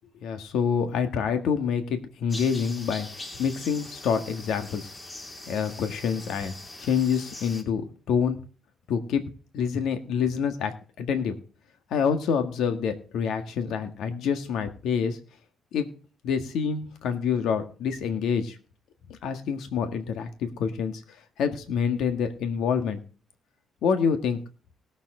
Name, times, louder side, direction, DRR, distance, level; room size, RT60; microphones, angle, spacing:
voice 1, 0.2-4.9 5.5-6.5 6.8-8.4 8.9-9.2 9.5-10.7 11.0-11.4 11.9-15.2 15.7-15.9 16.2-18.6 19.1-23.0 23.8-24.4, left 6 dB, 80° left, 7 dB, 1.7 m, -27 dB
sound 1, 2.3-7.6, left 2 dB, 25° left, 2.8 m, -42 dB
19.0 x 7.3 x 3.8 m, 0.37 s
cardioid pair, 90°, 0 cm